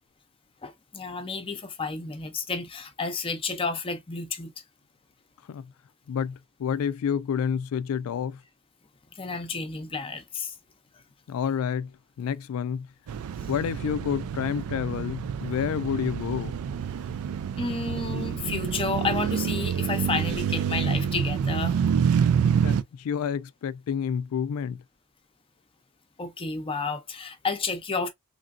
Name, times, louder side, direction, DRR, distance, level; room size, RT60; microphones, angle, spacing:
voice 1, 0.6-4.5 9.1-10.5 17.6-21.8 26.2-28.1, left 4 dB, 25° left, 0.6 m, -31 dB
voice 2, 6.1-8.4 11.3-11.9 12.2-12.9 13.5-16.5 22.6-24.8, left 7 dB, 75° left, 0.3 m, -29 dB
sound 1, 13.1-22.8, right 7 dB, 80° right, 0.3 m, -27 dB
3.2 x 2.5 x 2.4 m
head